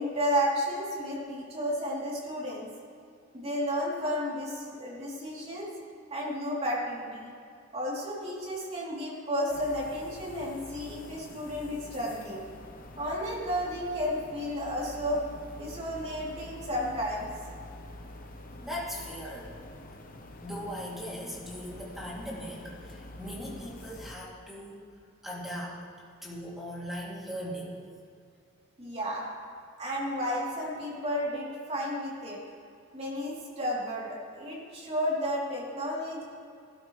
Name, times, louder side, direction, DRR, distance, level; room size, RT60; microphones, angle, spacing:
voice 1, 0.0-2.7 3.3-5.7 6.1-7.3 7.7-12.4 13.0-15.2 15.6-17.3 28.8-29.3 29.8-32.4 32.9-36.2, equal, 30° right, -5 dB, 3.2 m, -32 dB
sound 1, 9.5-24.2, left 1 dB, 45° left, 1.0 m, -46 dB
voice 2, 18.6-19.5 20.4-24.9 25.2-25.8 26.2-27.7, equal, ahead, -7 dB, 2.7 m, -39 dB
19.0 x 12.5 x 3.2 m, 2.4 s
head